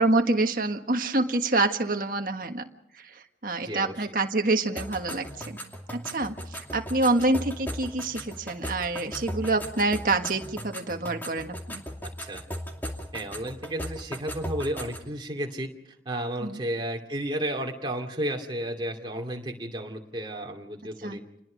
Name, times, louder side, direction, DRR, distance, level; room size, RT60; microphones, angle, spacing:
voice 1, 0.0-2.6 2.9-5.6 5.9-11.8 16.4-16.6 21.0-21.2, right 2 dB, 50° right, 5 dB, 1.6 m, -27 dB
voice 2, 3.6-3.9 12.3-12.4 13.1-15.7 16.0-21.2, right 1 dB, 25° right, 1 dB, 2.6 m, -32 dB
sound 1, 4.8-15.1, equal, 10° left, 2.6 m, -38 dB
28.5 x 20.5 x 5.2 m, 0.82 s
head